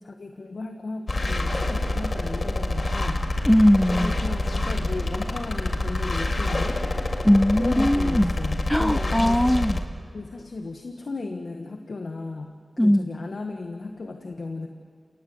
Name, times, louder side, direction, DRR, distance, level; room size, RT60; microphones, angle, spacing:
voice 1, 0.0-3.2 4.0-7.0 7.5-9.5 10.1-14.7, left 3 dB, 75° left, 4 dB, 1.4 m, -35 dB
sound 1, 1.1-9.8, left 2 dB, 55° left, 1.9 m, -27 dB
voice 2, 3.5-4.1 7.2-8.3 8.7-9.8 12.8-13.1, equal, 10° left, 18 dB, 0.6 m, -19 dB
28.5 x 18.5 x 7.9 m, 2.2 s
cardioid pair, 40°, 0 cm